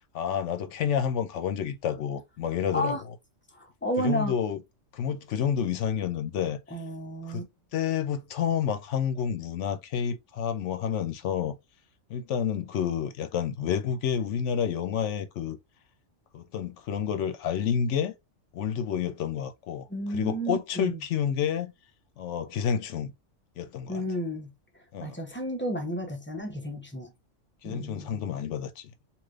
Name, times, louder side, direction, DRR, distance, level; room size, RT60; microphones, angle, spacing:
voice 1, 0.1-3.1 4.0-4.6 4.9-6.6 7.3-7.5 7.7-11.6 12.1-15.6 16.3-18.1 18.5-21.7 22.2-23.1 23.6-24.0 24.9-25.2 27.6-28.9, left 8 dB, 70° left, 0.9 m, -29 dB
voice 2, 3.5-4.4 6.7-7.4 19.9-21.0 23.9-24.5 25.0-27.1 27.6-28.2, right 1 dB, 15° left, 0.5 m, -32 dB
3.3 x 2.9 x 2.3 m
omnidirectional pair, 1.3 m